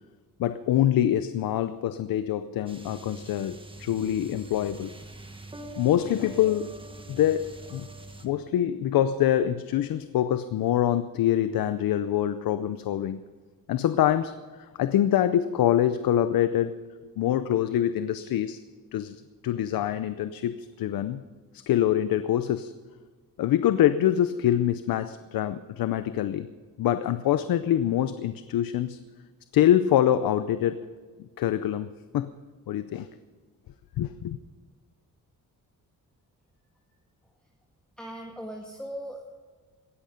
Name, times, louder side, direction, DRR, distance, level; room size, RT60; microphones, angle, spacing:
voice 1, 0.4-4.9 5.8-6.8 7.1-7.9 8.2-13.2 13.7-16.8 17.2-18.6 18.9-21.2 21.7-22.7 23.4-26.5 26.8-29.0 29.5-30.9 31.4-31.9 32.1-32.3 32.7-33.1 34.0-34.4, left 11 dB, 85° left, 0.7 m, -25 dB
sound 1, 2.7-8.3, right 2 dB, 15° right, 1.5 m, -44 dB
voice 2, 38.0-39.3, equal, 5° left, 1.8 m, -38 dB
18.0 x 14.0 x 5.2 m
cardioid pair, 120°, 34 cm